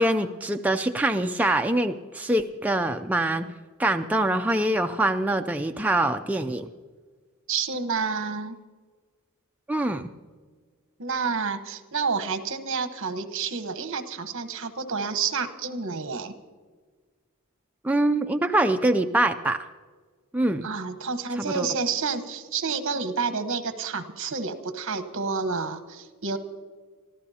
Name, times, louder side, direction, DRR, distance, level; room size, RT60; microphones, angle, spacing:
voice 1, 0.0-3.5 3.8-6.7 9.7-10.1 17.8-19.6 20.3-20.7 21.3-21.7, right 1 dB, 5° right, 5 dB, 0.4 m, -24 dB
voice 2, 7.5-8.6 11.0-16.3 20.6-26.4, right 5 dB, 60° right, 8 dB, 1.1 m, -29 dB
24.5 x 14.5 x 2.8 m, 1.5 s
head